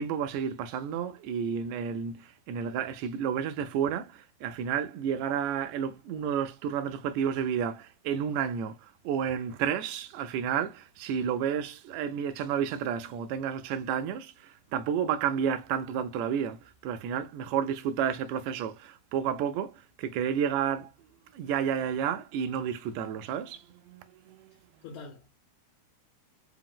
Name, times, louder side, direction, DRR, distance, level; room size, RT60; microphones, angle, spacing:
voice 1, 0.0-20.9 21.3-24.5, right 8 dB, 85° right, 1.6 m, -31 dB
voice 2, 24.5-25.3, left 4 dB, 70° left, 2.0 m, -46 dB
5.0 x 2.0 x 3.7 m
omnidirectional pair, 3.7 m